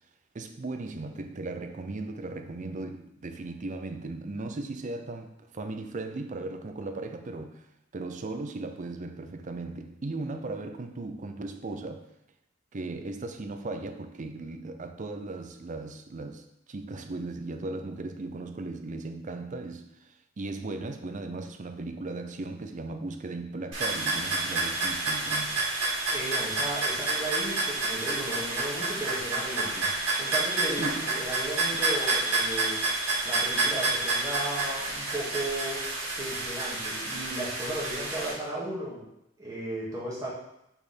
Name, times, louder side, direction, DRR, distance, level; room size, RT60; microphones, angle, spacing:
voice 1, 0.3-7.6 7.9-12.1 12.7-25.7 29.7-30.0 30.8-31.3 31.7-31.8, right 2 dB, 40° right, 0.5 m, -37 dB
sound 1, 23.7-38.3, right 3 dB, 80° right, 2.3 m, -29 dB
voice 2, 26.1-29.7 30.2-32.8 33.2-35.9 36.2-39.1 39.4-40.3, right 1 dB, 20° right, 1.9 m, -35 dB
5.7 x 4.2 x 4.2 m
head